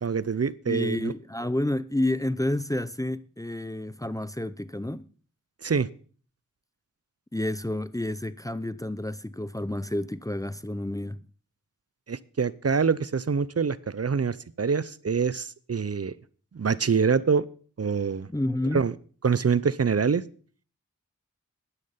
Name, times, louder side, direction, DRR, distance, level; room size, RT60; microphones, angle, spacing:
voice 1, 0.0-1.1 5.6-5.9 12.1-16.1 16.5-17.4 17.8-18.3 18.7-18.9 19.2-20.2, right 5 dB, 50° right, 0.6 m, -25 dB
voice 2, 0.7-5.1 7.3-11.2 18.3-18.9, left 1 dB, 10° left, 0.5 m, -30 dB
11.0 x 10.0 x 5.7 m
wide cardioid pair, 40°, 32 cm